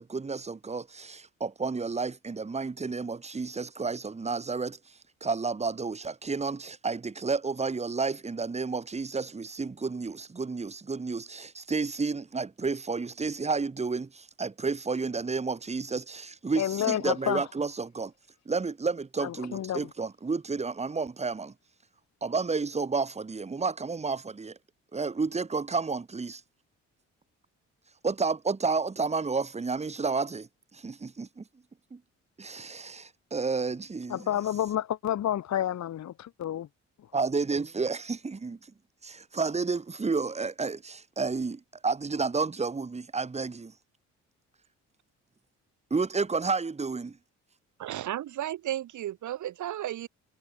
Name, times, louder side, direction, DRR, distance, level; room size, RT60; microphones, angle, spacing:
voice 1, 0.0-4.8 5.2-18.1 18.4-21.5 22.2-24.6 24.9-26.4 28.0-31.4 31.9-32.0 32.4-34.3 37.1-38.6 39.0-43.7 45.9-47.2, right 4 dB, 20° right, 1.6 m, -31 dB
voice 2, 16.6-17.4 19.2-19.9 34.1-36.7, left 11 dB, 65° left, 1.9 m, -30 dB
voice 3, 47.8-50.1, right 13 dB, 75° right, 2.5 m, -34 dB
cardioid pair, 90°, 30 cm